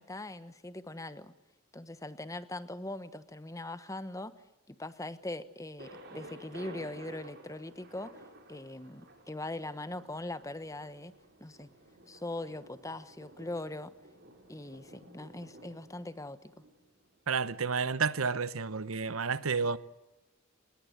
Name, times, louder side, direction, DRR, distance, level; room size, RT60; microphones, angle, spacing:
voice 1, 0.0-1.3 1.7-4.3 4.7-8.1 8.5-11.1 11.4-11.7 12.1-13.9 14.5-16.6, left 2 dB, 15° left, 1.1 m, -41 dB
Thunder, 5.8-17.6, right 1 dB, 55° right, 5.4 m, -53 dB
voice 2, 17.3-19.8, right 5 dB, 85° right, 1.0 m, -30 dB
29.5 x 20.0 x 8.0 m
head